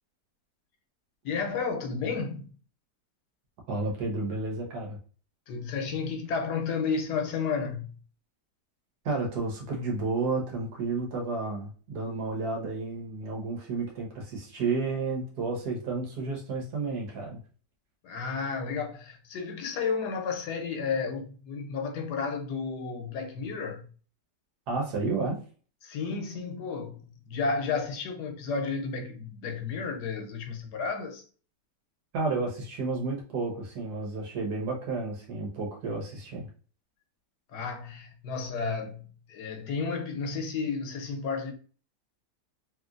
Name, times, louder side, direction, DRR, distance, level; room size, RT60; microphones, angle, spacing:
voice 1, 1.2-2.5 5.5-8.0 18.0-23.9 25.8-31.2 37.5-41.5, left 5 dB, 75° left, 1.2 m, -32 dB
voice 2, 3.7-5.0 9.0-17.4 24.7-25.4 32.1-36.5, right 3 dB, 70° right, 1.5 m, -31 dB
3.1 x 2.9 x 2.4 m
omnidirectional pair, 1.8 m